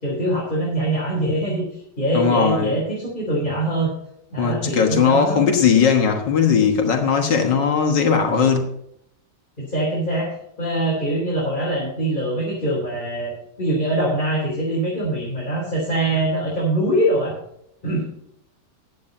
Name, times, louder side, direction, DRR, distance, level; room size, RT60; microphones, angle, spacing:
voice 1, 0.0-3.9 4.3-5.5 9.6-17.3 17.8-18.1, right 1 dB, 25° left, 4.0 m, -23 dB
voice 2, 2.1-2.8 4.4-8.7, left 6 dB, 85° left, 2.1 m, -18 dB
10.5 x 8.8 x 5.4 m
omnidirectional pair, 1.9 m